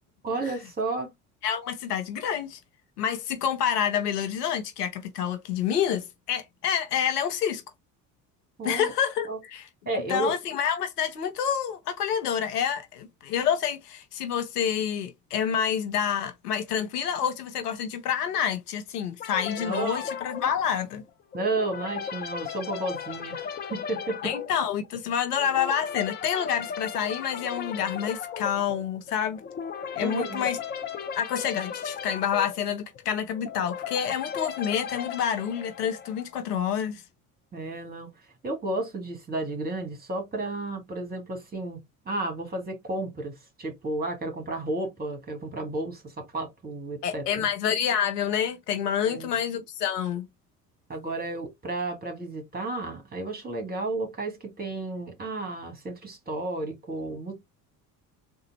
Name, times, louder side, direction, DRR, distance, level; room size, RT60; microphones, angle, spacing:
voice 1, 0.2-1.1 8.6-8.9 9.3-9.4 9.9-10.3 19.6-20.0 21.3-24.3 30.0-30.5 37.5-38.1 38.4-41.8 42.1-47.5 49.0-49.4 50.9-57.3, right 2 dB, 20° right, 1.7 m, -32 dB
voice 2, 1.4-2.6 3.0-7.6 8.6-21.0 24.2-29.4 30.0-30.6 31.1-37.0 47.0-50.3, left 8 dB, 70° left, 0.9 m, -28 dB
sound 1, 19.2-36.4, left 7 dB, 20° left, 0.5 m, -36 dB
3.7 x 2.5 x 4.0 m
figure-of-eight pair, 60°, 49 cm